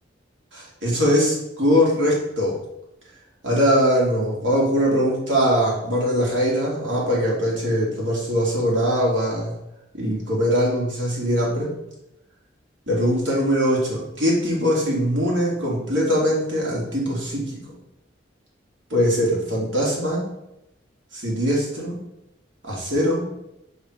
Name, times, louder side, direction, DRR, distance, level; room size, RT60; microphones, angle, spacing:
voice 1, 0.5-2.6 3.4-9.5 9.9-11.7 12.9-17.6 18.9-20.2 21.1-22.0 22.6-23.3, equal, 80° right, -4 dB, 2.2 m, -21 dB
5.7 x 3.8 x 4.8 m, 0.87 s
head